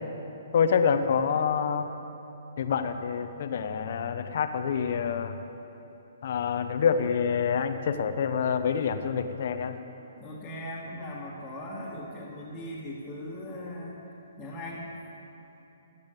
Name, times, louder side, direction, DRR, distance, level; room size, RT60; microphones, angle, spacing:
voice 1, 0.5-1.9 2.6-5.4 6.2-9.8, left 6 dB, 55° left, 9 dB, 0.9 m, -27 dB
voice 2, 10.2-14.0 14.4-14.9, left 1 dB, 10° left, -10 dB, 2.0 m, -39 dB
16.0 x 8.7 x 8.2 m, 3.0 s
hypercardioid pair, 160°, 0 cm